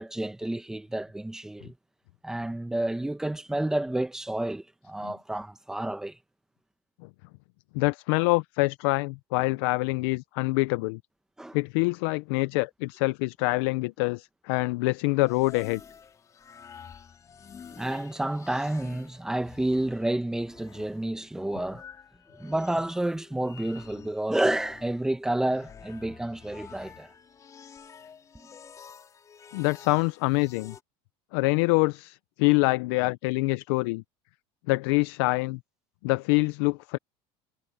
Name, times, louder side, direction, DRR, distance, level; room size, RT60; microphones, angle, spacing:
voice 1, 0.0-1.7 2.2-6.2 11.4-11.6 17.7-21.8 22.4-27.1, right 1 dB, 5° right, 1.2 m, -30 dB
voice 2, 7.7-11.0 11.5-15.8 29.5-30.7 31.3-34.0 34.7-35.6 36.0-37.0, left 24 dB, 75° left, 0.5 m, -25 dB
sound 1, 15.2-30.8, left 7 dB, 25° left, 3.6 m, -49 dB
supercardioid pair, 140°, 13 cm